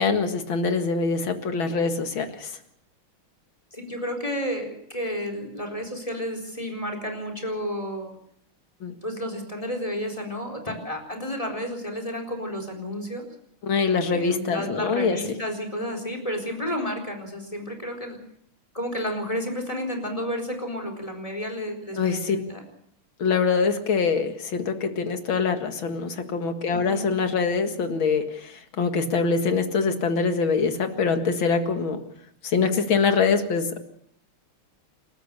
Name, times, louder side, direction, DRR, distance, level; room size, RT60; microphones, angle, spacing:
voice 1, 0.0-2.5 8.8-8.9 13.6-15.2 22.0-22.4 23.2-32.0 32.4-33.8, left 5 dB, 65° left, 7 dB, 2.6 m, -24 dB
voice 2, 3.7-8.1 9.0-13.2 14.1-18.2 18.7-22.6 26.7-27.1, equal, 15° left, 4 dB, 4.2 m, -31 dB
29.0 x 13.5 x 6.8 m, 0.69 s
omnidirectional pair, 2.4 m